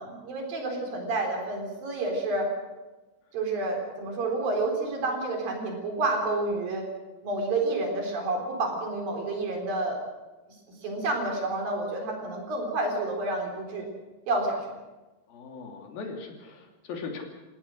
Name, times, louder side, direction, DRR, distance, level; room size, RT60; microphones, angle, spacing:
voice 1, 0.0-2.5 3.3-6.8 7.2-10.0 10.8-13.9 14.3-14.6, right 2 dB, 65° right, 1 dB, 5.7 m, -29 dB
voice 2, 15.3-17.2, left 4 dB, 70° left, 2 dB, 4.6 m, -39 dB
29.0 x 16.5 x 6.5 m, 1.1 s
omnidirectional pair, 4.4 m